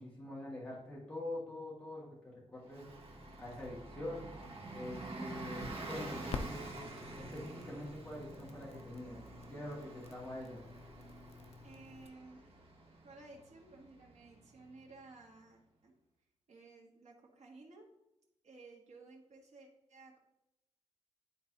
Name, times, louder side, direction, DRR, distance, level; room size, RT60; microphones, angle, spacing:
voice 1, 0.0-2.9 3.4-4.3 4.7-6.8 7.1-9.2 9.5-10.6, left 1 dB, 10° left, -6 dB, 2.1 m, -45 dB
Bus, 2.6-14.9, right 2 dB, 55° right, 1.1 m, -48 dB
Crackle, 5.5-12.1, left 5 dB, 60° left, 0.5 m, -49 dB
voice 2, 11.6-12.6 13.0-15.9 16.5-17.9 18.4-20.2, right 3 dB, 75° right, 0 dB, 1.6 m, -56 dB
11.0 x 3.9 x 2.9 m, 0.87 s
wide cardioid pair, 160°, 12 cm